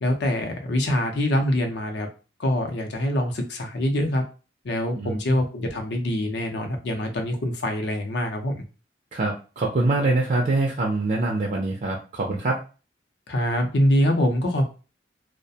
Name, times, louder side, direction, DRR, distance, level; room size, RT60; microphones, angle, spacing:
voice 1, 0.0-2.1 2.4-4.2 4.6-8.6 13.3-14.6, left 1 dB, 65° left, 5 dB, 0.6 m, -24 dB
voice 2, 5.0-5.4 9.1-12.6, right 2 dB, 45° right, -1 dB, 0.4 m, -24 dB
2.4 x 2.1 x 2.7 m, 0.34 s
head